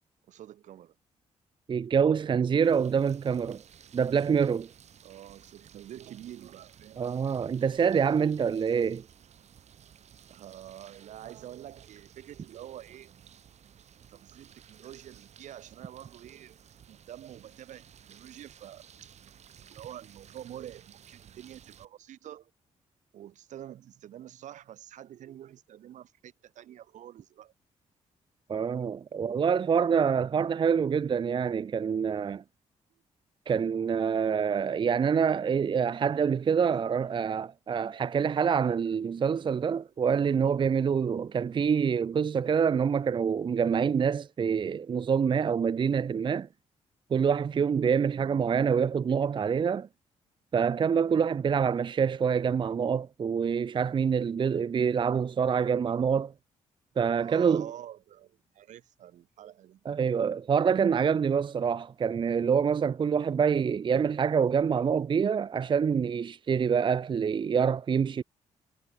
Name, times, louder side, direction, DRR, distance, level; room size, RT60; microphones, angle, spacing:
voice 1, 0.3-0.9 5.0-7.0 10.3-13.1 14.1-16.6 16.9-19.1 19.7-22.5 23.1-27.5 33.6-34.2 48.1-48.7 55.5-56.1 57.2-59.8, right 11 dB, 80° right, 1.8 m, -47 dB
voice 2, 1.7-3.6 3.9-4.7 7.0-9.0 28.5-32.4 33.5-46.5 47.1-49.9 50.5-56.3 57.0-57.7 59.9-68.2, right 6 dB, 40° right, 0.5 m, -26 dB
sound 1, 2.6-21.8, right 8 dB, 65° right, 1.9 m, -55 dB
cardioid pair, 80°, 13 cm